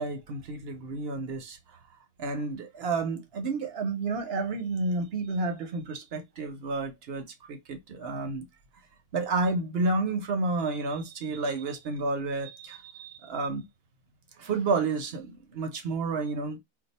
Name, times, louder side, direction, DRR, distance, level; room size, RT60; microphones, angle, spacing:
voice 1, 0.0-1.6 2.2-8.4 9.1-13.6 14.4-16.6, right 3 dB, 55° right, 0.8 m, -30 dB
2.6 x 2.3 x 4.0 m
omnidirectional pair, 1.5 m